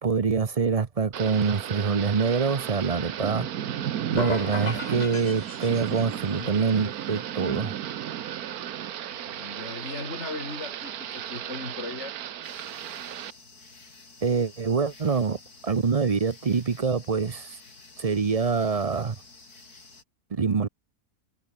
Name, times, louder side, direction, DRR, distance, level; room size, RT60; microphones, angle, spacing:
voice 1, 0.0-3.5 4.1-7.7 14.2-15.4 15.6-17.6 18.0-19.2 20.3-20.7, right 5 dB, 35° right, 0.6 m, -25 dB
Thunder / Rain, 1.1-13.3, right 10 dB, 75° right, 1.4 m, -34 dB
sound 1, 4.2-6.3, left 2 dB, 25° left, 3.1 m, -35 dB
voice 2, 6.3-6.6 9.3-12.2, left 2 dB, 45° left, 5.2 m, -38 dB
sound 2, 12.4-20.0, left 3 dB, 85° left, 4.7 m, -51 dB
omnidirectional pair, 1.6 m